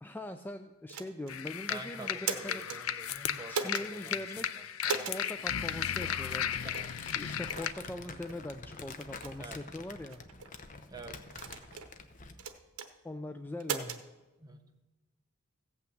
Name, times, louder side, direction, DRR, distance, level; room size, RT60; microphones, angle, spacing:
voice 1, 0.0-2.6 3.5-4.5 4.9-6.6 7.1-10.2 13.0-14.0, left 1 dB, 10° left, 8 dB, 0.3 m, -41 dB
sound 1, 0.9-1.4 2.0-2.8 3.5-3.9 4.8-5.2 6.0-6.1 6.7-6.9 7.5-7.7 8.3-8.4 9.0-9.3 10.1-10.5 11.3-11.9 12.4-12.9 13.6-14.0, right 5 dB, 85° right, 0.9 m, -37 dB
sound 2, 1.3-7.7, left 9 dB, 70° left, 0.5 m, -35 dB
voice 2, 1.7-4.2 4.6-5.1 6.6-6.9 9.4-9.6 10.9-11.2 14.4-14.6, right 3 dB, 20° right, 5 dB, 0.9 m, -47 dB
Crumpling crinkling, 5.8-12.5, left 4 dB, 40° left, 0.8 m, -47 dB
15.5 x 5.8 x 7.7 m, 1.1 s
head